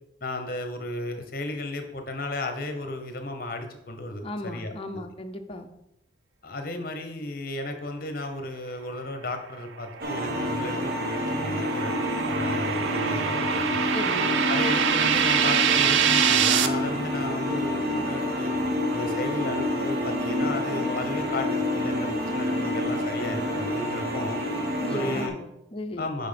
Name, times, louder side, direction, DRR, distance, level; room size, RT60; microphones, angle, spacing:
voice 1, 0.2-4.7 6.4-11.9 12.3-13.8 14.5-18.5 18.9-24.4 24.9-25.4 26.0-26.3, left 1 dB, 50° left, 6 dB, 1.0 m, -34 dB
voice 2, 4.2-5.7 13.9-14.3 24.8-26.1, left 1 dB, 30° left, 4 dB, 0.7 m, -36 dB
sound 1, 9.8-16.7, right 8 dB, 80° right, 0.5 m, -25 dB
sound 2, 10.0-25.3, left 1 dB, 55° right, 1.2 m, -28 dB
6.3 x 5.5 x 5.2 m, 0.85 s
head